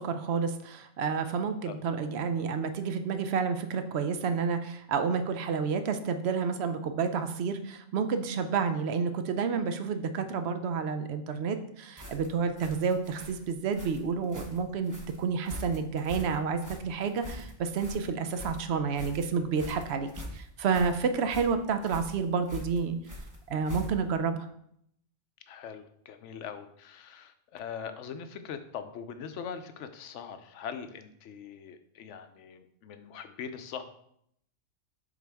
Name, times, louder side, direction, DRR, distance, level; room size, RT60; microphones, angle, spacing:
voice 1, 0.0-23.0 23.5-24.5, right 5 dB, 65° right, 8 dB, 0.8 m, -30 dB
sound 1, 12.0-24.2, left 1 dB, 15° right, 0.8 m, -44 dB
voice 2, 25.5-33.8, left 7 dB, 75° left, 9 dB, 0.9 m, -42 dB
7.3 x 3.9 x 3.5 m, 0.71 s
omnidirectional pair, 1.3 m